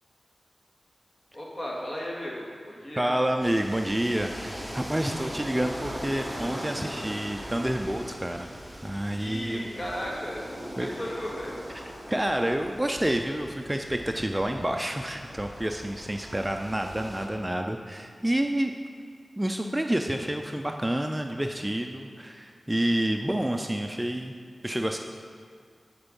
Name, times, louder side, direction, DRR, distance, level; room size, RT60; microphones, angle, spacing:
voice 1, 1.3-3.1 9.2-10.5 10.8-11.5, equal, 40° left, -4 dB, 1.9 m, -35 dB
voice 2, 3.0-8.5 8.8-9.7 10.8-10.9 11.7-11.8 12.1-18.7 19.4-24.3 24.6-25.0, right 1 dB, 15° right, 4 dB, 0.4 m, -28 dB
sound 1, 3.4-17.3, equal, 5° left, 1.1 m, -40 dB
10.0 x 4.5 x 5.4 m, 2.1 s
wide cardioid pair, 65°, 0 cm